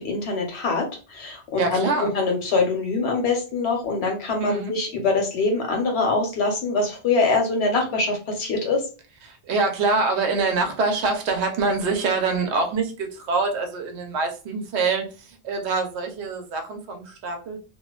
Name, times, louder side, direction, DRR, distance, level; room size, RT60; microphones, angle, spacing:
voice 1, 0.0-8.8, left 3 dB, 75° left, 2 dB, 1.1 m, -24 dB
voice 2, 1.6-2.1 4.4-4.7 9.3-17.6, right 3 dB, 90° right, 5 dB, 0.9 m, -25 dB
2.4 x 2.2 x 2.2 m, 0.34 s
omnidirectional pair, 1.1 m